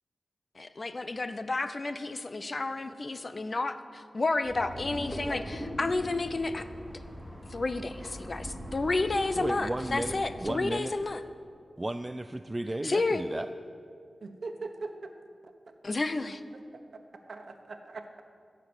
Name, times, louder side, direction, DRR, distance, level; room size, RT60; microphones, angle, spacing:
voice 1, 0.6-6.7 7.5-11.2 12.8-13.2 15.8-16.4, left 3 dB, 40° left, 11 dB, 0.6 m, -31 dB
sound 1, 4.4-10.5, left 1 dB, 20° left, 1.8 m, -42 dB
sound 2, 4.7-10.2, equal, 5° right, 2.7 m, -45 dB
voice 2, 9.3-11.0 11.8-13.5, right 1 dB, 20° right, 9 dB, 0.3 m, -34 dB
voice 3, 14.2-15.1 15.4-15.5 16.7-16.8 17.3-18.2, right 3 dB, 65° right, 6 dB, 1.1 m, -41 dB
15.0 x 6.7 x 9.6 m, 2.3 s
wide cardioid pair, 105°, 0 cm